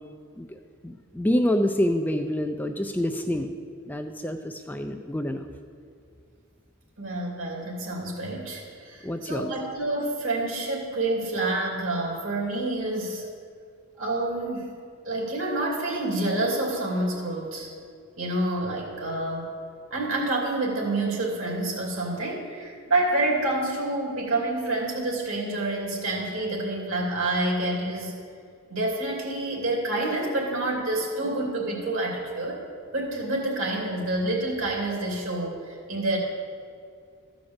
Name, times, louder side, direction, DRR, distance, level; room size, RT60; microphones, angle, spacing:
voice 1, 0.4-3.5 3.9-5.4 9.0-9.5, left 1 dB, 10° left, 5 dB, 0.3 m, -27 dB
voice 2, 7.0-13.3 14.0-14.8 15.0-17.7 18.2-19.5 19.9-28.2 28.7-32.6 32.9-36.2, right 2 dB, 65° right, -1 dB, 2.7 m, -28 dB
14.0 x 5.1 x 7.1 m, 2.3 s
head